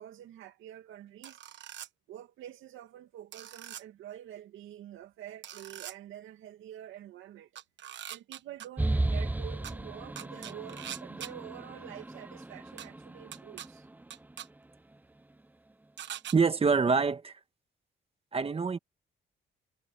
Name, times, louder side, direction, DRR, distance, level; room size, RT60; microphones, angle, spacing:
voice 1, 0.0-1.4 2.1-7.5 8.1-13.9, right 11 dB, 85° right, 2.2 m, -47 dB
sound 1, 1.2-1.9 3.3-3.8 5.4-5.9 7.6-8.7 9.6-9.7 10.2-11.3 12.8-12.9 13.3-13.7 14.1-14.5 16.0-16.4, right 11 dB, 65° right, 1.2 m, -42 dB
sound 2, 8.8-14.3, right 2 dB, 10° right, 0.6 m, -35 dB
voice 2, 16.3-17.4 18.3-18.8, right 5 dB, 30° right, 1.5 m, -25 dB
cardioid pair, 90°, 20 cm